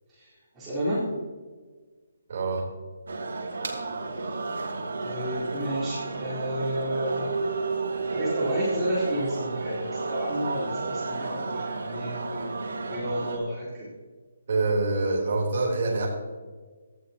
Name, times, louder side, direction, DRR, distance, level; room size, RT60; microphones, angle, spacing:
voice 1, 0.1-1.1 5.0-7.3 8.1-12.5 12.9-13.9, equal, 10° right, -11 dB, 4.5 m, -31 dB
voice 2, 2.3-2.6 14.5-16.1, right 3 dB, 40° right, -3 dB, 3.7 m, -25 dB
sound 1, 3.1-13.4, right 3 dB, 80° right, 2.7 m, -32 dB
17.5 x 13.0 x 3.0 m, 1.4 s
hypercardioid pair, 180°, 0 cm